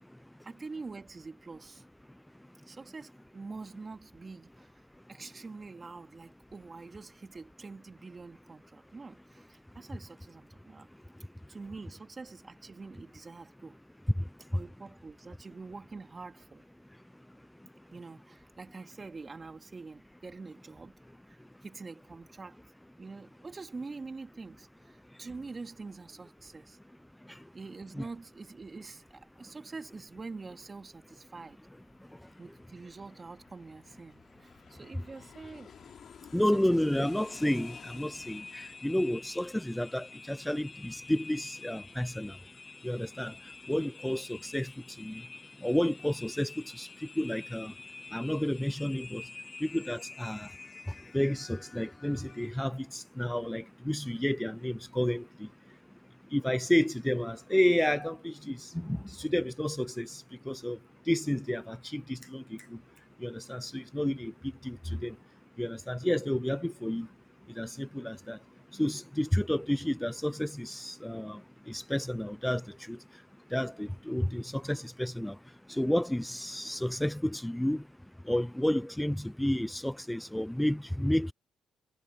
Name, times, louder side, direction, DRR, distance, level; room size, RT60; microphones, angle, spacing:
voice 1, 0.4-1.8 2.6-4.7 5.1-10.9 11.5-13.8 14.5-16.6 17.9-21.0 21.3-22.6 23.0-26.8 27.5-31.6 32.4-35.7 36.5-36.8, right 4 dB, 30° right, 3.2 m, -45 dB
Aircraft, 29.3-40.6 40.9-41.0, left 8 dB, 60° left, 3.3 m, -55 dB
voice 2, 36.3-38.4 38.8-42.3 42.8-43.3 43.7-44.7 45.0-45.2 45.6-46.5 46.8-46.9 47.2-47.7 48.1-49.2 49.6-50.5 51.1-55.5 56.3-60.1 60.5-60.8 61.1-62.8 63.2-64.3 64.6-65.1 65.6-67.1 67.6-68.4 68.8-71.4 71.7-72.6 72.9-73.0 73.5-75.4 75.8-77.8 78.3-81.3, left 1 dB, 5° left, 0.6 m, -31 dB
sound 1, 36.9-52.5, left 4 dB, 30° left, 5.3 m, -49 dB
supercardioid pair, 70°, 0 cm